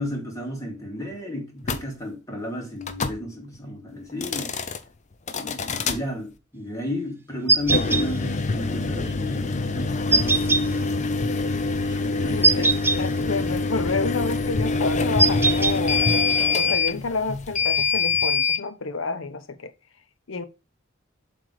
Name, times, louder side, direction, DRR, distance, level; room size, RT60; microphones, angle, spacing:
voice 1, 0.0-4.6 5.3-10.9 12.0-12.8, left 1 dB, 15° left, 2.3 m, -33 dB
sound 1, 1.6-1.8 2.8-3.2 4.1-4.8 5.3-6.0 7.6-18.6, left 4 dB, 35° left, 0.6 m, -25 dB
sound 2, 7.5-8.0 10.1-10.6 12.4-13.0 15.2-15.7, right 3 dB, 10° right, 0.5 m, -19 dB
voice 2, 12.2-12.7 13.0-16.0 16.5-19.7 20.3-20.5, left 4 dB, 75° left, 0.8 m, -29 dB
7.6 x 3.5 x 4.8 m
head